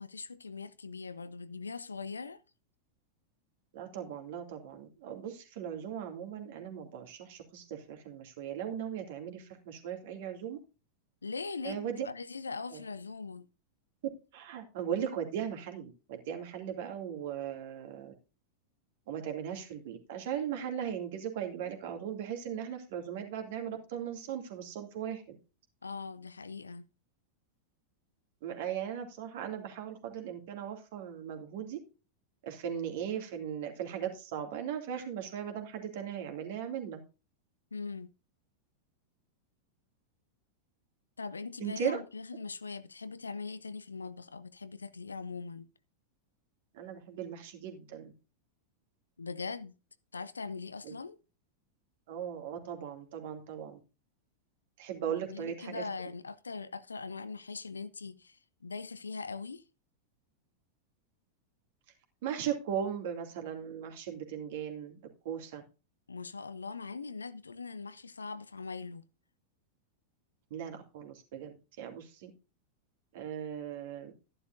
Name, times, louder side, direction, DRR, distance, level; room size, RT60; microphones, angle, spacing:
voice 1, 0.0-2.4 11.2-13.5 25.8-26.8 37.7-38.1 41.2-45.7 49.2-49.7 50.1-51.2 55.1-59.6 66.1-69.0, left 4 dB, 75° left, 0.6 m, -41 dB
voice 2, 3.7-10.6 11.6-12.1 12.7-12.8 14.3-18.1 19.1-25.4 28.4-31.8 32.4-37.0 41.6-42.0 46.7-48.1 50.8-50.9 52.1-53.8 54.8-55.8 62.2-65.0 65.2-65.6 70.5-72.3 73.1-74.1, right 9 dB, 50° right, 2.5 m, -38 dB
12.5 x 11.0 x 2.6 m
figure-of-eight pair, 90°, 0 cm